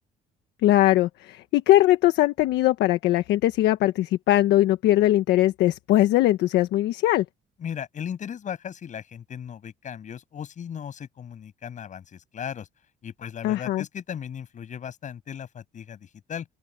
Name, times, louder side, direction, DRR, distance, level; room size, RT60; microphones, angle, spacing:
voice 1, 0.6-7.2 13.4-13.8, left 15 dB, 80° left, 1.4 m, -20 dB
voice 2, 7.6-12.7 13.0-16.5, left 8 dB, 45° left, 7.6 m, -37 dB
open air
cardioid pair, 110°, 17 cm